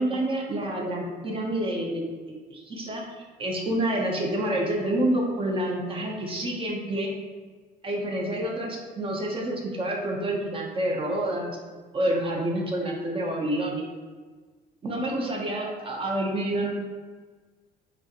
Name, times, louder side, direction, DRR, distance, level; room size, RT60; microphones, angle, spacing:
voice 1, 0.0-2.0 2.5-3.0 3.4-7.1 7.8-11.5 11.9-13.8 14.8-16.7, right 1 dB, 30° right, -1 dB, 0.8 m, -28 dB
5.2 x 2.5 x 2.9 m, 1.4 s
cardioid pair, 110°, 17 cm